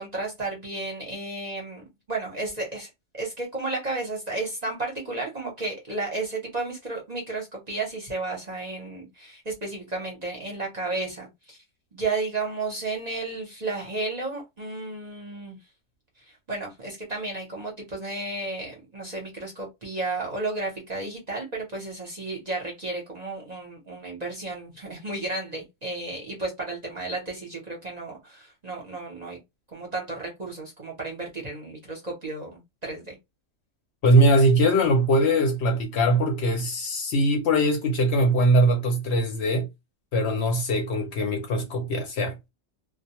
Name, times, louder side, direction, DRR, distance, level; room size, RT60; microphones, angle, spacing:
voice 1, 0.0-2.9 3.2-11.6 11.9-15.6 16.3-29.4 29.7-33.2, right 3 dB, 40° right, 0.7 m, -33 dB
voice 2, 34.0-39.7 40.1-42.4, right 1 dB, 60° left, 0.8 m, -21 dB
2.2 x 2.1 x 2.8 m
omnidirectional pair, 1.4 m